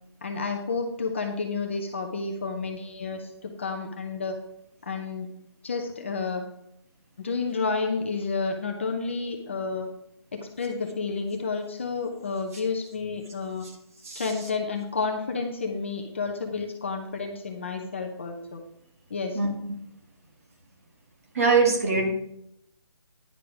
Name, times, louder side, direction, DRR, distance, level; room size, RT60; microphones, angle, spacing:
voice 1, 0.2-4.4 4.8-5.3 5.6-6.4 7.2-9.9 10.3-13.6 14.2-18.6 19.1-19.4, left 4 dB, 25° left, 3 dB, 0.7 m, -30 dB
voice 2, 19.3-19.8 21.3-22.1, right 4 dB, 30° right, 1 dB, 1.7 m, -23 dB
10.5 x 6.8 x 4.8 m, 0.75 s
hypercardioid pair, 180°, 15 cm